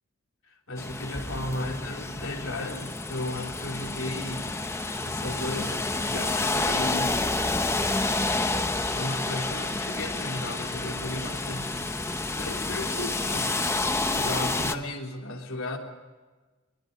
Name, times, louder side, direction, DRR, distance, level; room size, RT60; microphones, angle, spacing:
voice 1, 0.4-4.6 5.0-7.2 8.9-12.0 12.4-13.6 14.1-15.8, left 1 dB, 80° left, 1 dB, 3.7 m, -35 dB
sound 1, 0.8-14.8, left 2 dB, 15° left, 1.0 m, -29 dB
Cricket, 2.7-13.0, left 9 dB, 40° left, 4.9 m, -47 dB
23.0 x 22.0 x 6.8 m, 1.3 s
head